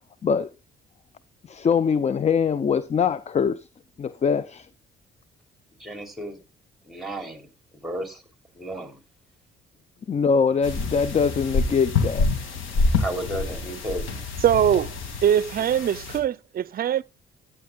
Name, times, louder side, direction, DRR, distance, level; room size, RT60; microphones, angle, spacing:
voice 1, 1.5-3.7 4.0-4.7 10.1-12.3, left 6 dB, 35° left, 0.5 m, -23 dB
voice 2, 5.8-6.4 6.8-7.5 7.8-8.2 8.5-9.0 13.0-14.1, right 1 dB, ahead, 3.2 m, -33 dB
sound 1, 10.6-16.2, left 3 dB, 85° left, 2.3 m, -27 dB
voice 3, 14.4-14.9 15.2-17.0, right 10 dB, 50° right, 0.5 m, -22 dB
14.0 x 9.5 x 2.3 m
cardioid pair, 90°, 20 cm